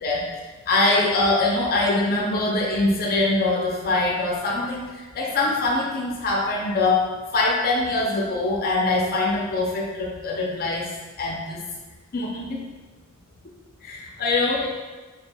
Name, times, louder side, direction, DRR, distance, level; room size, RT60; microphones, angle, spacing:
voice 1, 0.7-10.9 11.2-11.6 12.1-12.7 13.8-14.7, left 2 dB, 45° left, -1 dB, 0.5 m, -23 dB
4.4 x 3.3 x 2.3 m, 1.3 s
head